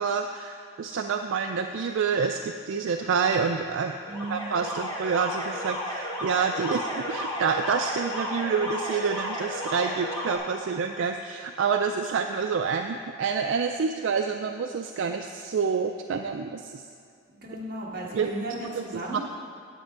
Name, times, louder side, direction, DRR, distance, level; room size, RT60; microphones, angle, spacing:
voice 1, 0.0-3.9 4.3-16.8 18.1-18.3 18.7-19.2, right 5 dB, 70° right, 5 dB, 0.4 m, -28 dB
Alarm, 3.9-10.4, equal, 20° left, 1.3 m, -33 dB
voice 2, 4.1-4.5 17.4-19.2, right 1 dB, 45° right, -4 dB, 1.6 m, -35 dB
9.1 x 8.2 x 4.6 m, 2.3 s
head